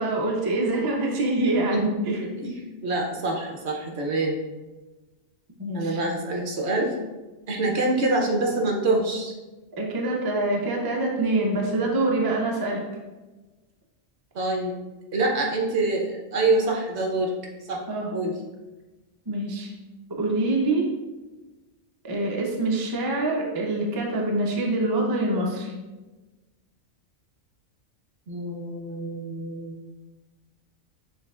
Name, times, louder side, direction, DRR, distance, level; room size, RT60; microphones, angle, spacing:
voice 1, 0.0-2.2 5.6-6.0 9.8-12.8 17.9-18.1 19.3-19.7 20.1-20.9 22.0-25.7, right 2 dB, 30° right, -1 dB, 0.4 m, -25 dB
voice 2, 2.8-4.4 5.7-7.0 7.5-9.3 14.3-14.7 15.1-17.3 17.7-17.8 18.1-18.3 28.3-29.7, right 2 dB, 60° right, 0 dB, 1.0 m, -25 dB
6.4 x 3.3 x 2.4 m, 1.2 s
omnidirectional pair, 1.4 m